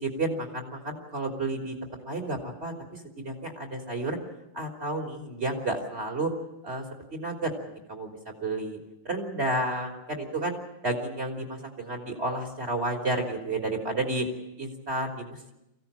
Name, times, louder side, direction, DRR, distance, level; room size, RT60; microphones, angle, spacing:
voice 1, 0.0-1.7 2.0-4.2 4.5-6.3 6.6-6.8 7.1-7.5 7.9-8.8 9.1-10.5 10.8-14.3 14.6-15.5, right 2 dB, 30° right, 2 dB, 3.7 m, -31 dB
24.0 x 16.5 x 9.0 m, 0.90 s
omnidirectional pair, 2.1 m